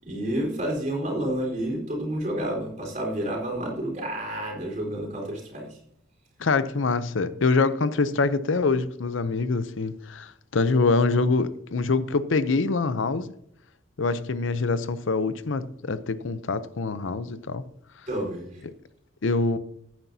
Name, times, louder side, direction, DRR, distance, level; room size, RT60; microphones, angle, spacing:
voice 1, 0.0-5.8 18.1-18.6, right 1 dB, 40° right, 4.4 m, -30 dB
voice 2, 6.4-13.3 14.0-17.6 18.6-18.7 19.2-19.6, left 3 dB, 75° left, 0.6 m, -25 dB
15.0 x 9.6 x 2.7 m
head